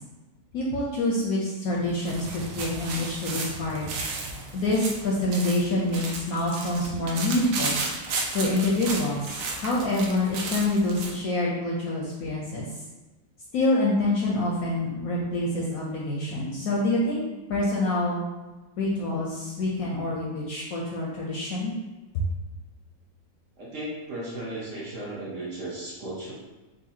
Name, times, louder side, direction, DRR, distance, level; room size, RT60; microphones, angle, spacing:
voice 1, 0.5-3.9 4.5-7.8 8.3-12.7 13.5-17.2 17.5-18.2 18.8-21.7 22.1-22.2, left 2 dB, 70° left, -4 dB, 0.9 m, -26 dB
sound 1, 1.7-11.2, right 3 dB, 90° right, 1.3 m, -34 dB
voice 2, 23.6-26.3, right 1 dB, 55° right, -6 dB, 1.0 m, -35 dB
4.1 x 2.5 x 2.7 m, 1.1 s
omnidirectional pair, 1.9 m